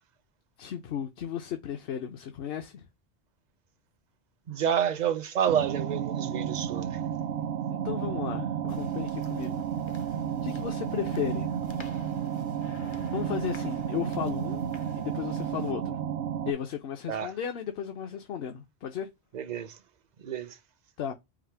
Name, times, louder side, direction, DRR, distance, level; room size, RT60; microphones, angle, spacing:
voice 1, 0.6-2.9 7.7-9.7 10.0-11.6 13.1-16.0 16.5-19.1 21.0-21.1, left 9 dB, 65° left, 0.8 m, -35 dB
voice 2, 4.5-7.0 17.1-17.3 19.3-19.8 20.2-20.6, right 9 dB, 50° right, 0.5 m, -29 dB
sound 1, 5.5-16.5, right 9 dB, 85° right, 0.9 m, -32 dB
sound 2, 8.7-15.7, left 3 dB, 35° left, 0.5 m, -48 dB
4.8 x 2.0 x 4.4 m
omnidirectional pair, 1.1 m